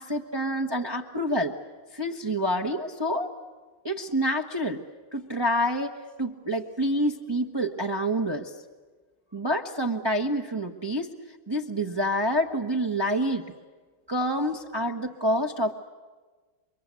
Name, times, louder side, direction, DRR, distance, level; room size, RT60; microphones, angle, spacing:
voice 1, 0.0-1.5 1.9-3.3 3.8-4.8 5.1-8.5 9.3-11.1 11.5-13.5 14.1-15.7, equal, 15° right, 2 dB, 0.9 m, -27 dB
29.5 x 23.5 x 8.4 m, 1.4 s
omnidirectional pair, 2.2 m